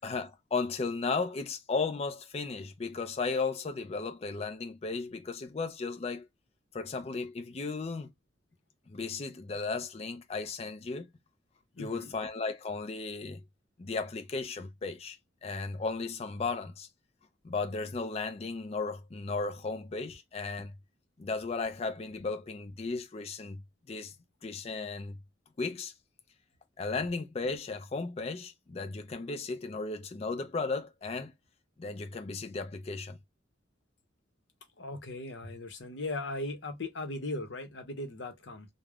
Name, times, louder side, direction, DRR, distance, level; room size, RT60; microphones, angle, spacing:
voice 1, 0.0-6.3 6.7-8.1 8.9-11.1 11.8-13.4 13.8-16.9 17.4-20.7 21.2-23.6 23.9-24.1 24.4-25.2 25.6-25.9 26.8-31.3 31.8-33.2, left 4 dB, 35° left, 0.4 m, -35 dB
voice 2, 11.8-12.1 34.8-38.7, left 2 dB, 65° left, 0.8 m, -38 dB
3.3 x 2.1 x 2.3 m
head